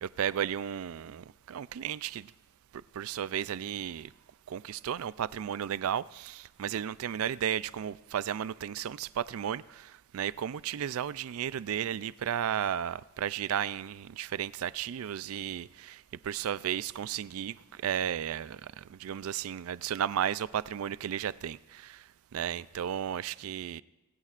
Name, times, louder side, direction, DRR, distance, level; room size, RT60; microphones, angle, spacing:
voice 1, 0.0-2.3 2.9-4.1 4.5-22.0 22.3-23.8, right 9 dB, 65° right, 0.3 m, -34 dB
20.0 x 17.0 x 2.5 m
head